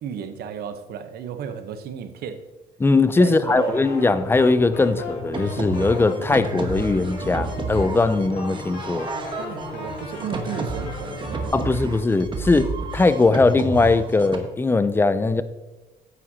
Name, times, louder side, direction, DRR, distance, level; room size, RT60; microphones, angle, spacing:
voice 1, 0.0-2.4 3.2-3.9 9.3-11.8, right 8 dB, 70° right, 0.8 m, -33 dB
voice 2, 2.8-9.1 11.5-15.4, left 3 dB, 15° left, 0.4 m, -20 dB
sound 1, 3.5-11.5, left 2 dB, 80° left, 2.7 m, -35 dB
sound 2, 5.3-14.4, right 3 dB, 30° right, 1.1 m, -31 dB
9.4 x 8.6 x 2.8 m
cardioid pair, 110°, 17 cm